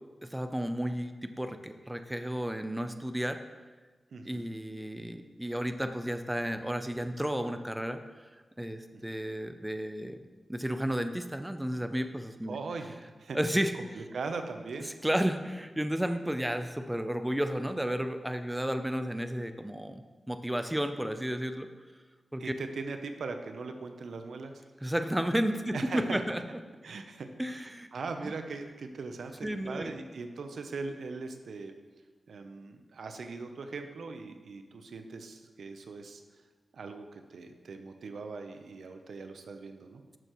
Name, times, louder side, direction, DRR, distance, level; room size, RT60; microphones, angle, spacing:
voice 1, 0.2-3.4 4.2-8.0 8.6-10.2 10.5-12.6 13.3-13.7 14.9-21.7 22.3-22.5 24.8-26.4 27.4-27.9 28.2-28.3 29.4-30.0, equal, 10° right, 8 dB, 0.5 m, -32 dB
voice 2, 4.1-4.5 8.9-9.0 12.5-12.9 13.2-13.4 13.8-14.9 22.4-24.5 25.7-26.2 26.8-31.7 32.3-36.2 36.7-40.0, right 4 dB, 80° right, 6 dB, 0.7 m, -40 dB
12.0 x 6.7 x 3.1 m, 1.3 s
wide cardioid pair, 80°, 0 cm